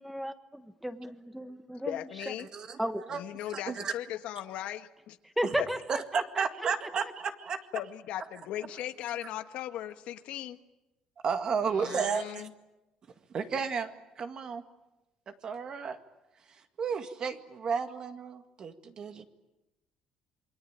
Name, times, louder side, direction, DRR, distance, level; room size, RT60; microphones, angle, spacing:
voice 1, 0.0-2.0 2.8-3.0 5.4-6.4, equal, ahead, 10 dB, 1.5 m, -34 dB
voice 2, 1.8-2.5 3.1-5.2 5.6-5.7 7.7-10.6 11.6-12.5, left 12 dB, 75° left, 9 dB, 1.5 m, -38 dB
voice 3, 2.4-2.8 3.1-3.2 3.5-3.9 5.4-5.5 5.9-7.6 11.2-12.5 13.3-13.9 14.2-14.6 15.3-16.0 16.5-19.2, right 6 dB, 40° right, 8 dB, 1.9 m, -33 dB
28.0 x 23.0 x 9.0 m, 1.0 s
cardioid pair, 150°, 2 cm